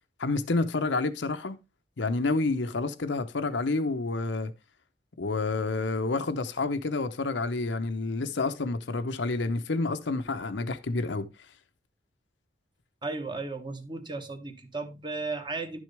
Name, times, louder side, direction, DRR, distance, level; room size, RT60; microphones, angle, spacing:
voice 1, 0.2-1.6 2.0-4.5 5.2-11.3, left 3 dB, 75° left, 0.8 m, -29 dB
voice 2, 13.0-15.8, right 3 dB, 25° right, 1.2 m, -35 dB
11.0 x 6.3 x 3.3 m
head